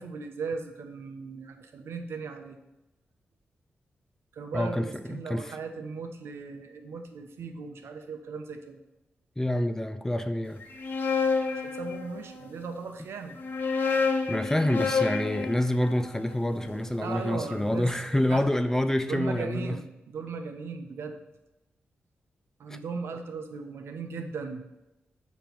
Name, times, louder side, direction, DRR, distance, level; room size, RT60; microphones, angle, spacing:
voice 1, 0.0-2.6 4.3-8.8 11.6-13.4 17.0-18.4 19.1-21.2 22.6-24.6, right 4 dB, 80° right, 5 dB, 0.7 m, -37 dB
voice 2, 4.5-5.6 9.4-10.6 14.3-19.8 22.7-22.8, left 1 dB, 10° left, 10 dB, 0.4 m, -27 dB
sound 1, 10.6-12.5 13.3-17.4, left 4 dB, 50° left, 0.7 m, -30 dB
6.8 x 3.1 x 5.9 m, 0.97 s
cardioid pair, 90°, 4 cm